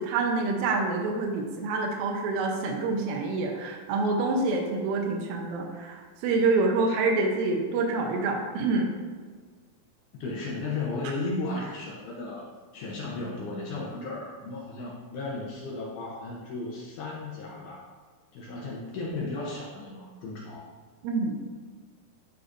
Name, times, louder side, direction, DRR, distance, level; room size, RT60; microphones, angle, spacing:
voice 1, 0.0-8.9 21.0-21.4, right 3 dB, 80° right, 1 dB, 2.5 m, -27 dB
voice 2, 10.2-12.5 12.7-17.9 18.3-20.7, left 3 dB, 70° left, -3 dB, 2.0 m, -35 dB
11.5 x 3.9 x 2.5 m, 1.5 s
omnidirectional pair, 4.2 m